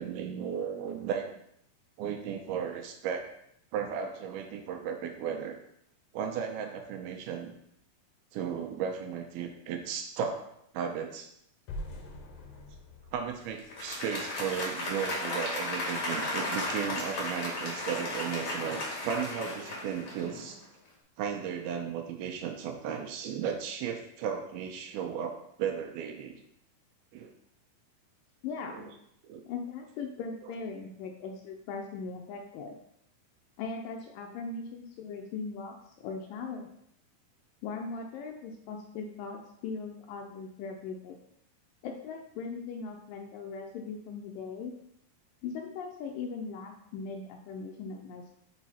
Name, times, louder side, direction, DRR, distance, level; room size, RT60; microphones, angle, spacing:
voice 1, 0.0-1.3 2.0-3.3 3.7-5.6 6.1-7.5 8.3-11.3 13.1-20.6 21.2-26.4 27.1-27.3 28.7-28.9 29.2-29.4, right 7 dB, 80° right, 4 dB, 2.5 m, -35 dB
sound 1, 11.7-14.7, left 1 dB, 70° left, 1.9 m, -44 dB
Applause, 13.6-20.6, left 2 dB, 50° left, 1.6 m, -35 dB
voice 2, 28.4-28.9 29.5-32.8 33.6-36.7 37.6-41.2 41.8-44.7 45.4-48.3, left 4 dB, 90° left, 2 dB, 2.0 m, -39 dB
5.5 x 5.0 x 4.2 m, 0.74 s
omnidirectional pair, 4.5 m